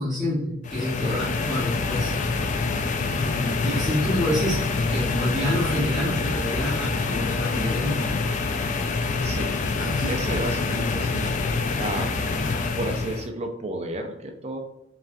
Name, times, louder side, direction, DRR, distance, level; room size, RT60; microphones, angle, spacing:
voice 1, 0.0-2.1 3.1-8.1 9.8-10.2 10.9-11.1, left 1 dB, ahead, -11 dB, 1.0 m, -28 dB
sound 1, 0.6-13.3, left 3 dB, 40° left, 0.3 m, -26 dB
voice 2, 10.1-11.3 11.8-12.1 12.7-14.6, right 1 dB, 30° right, 4 dB, 0.4 m, -32 dB
5.3 x 2.3 x 2.5 m, 0.77 s
head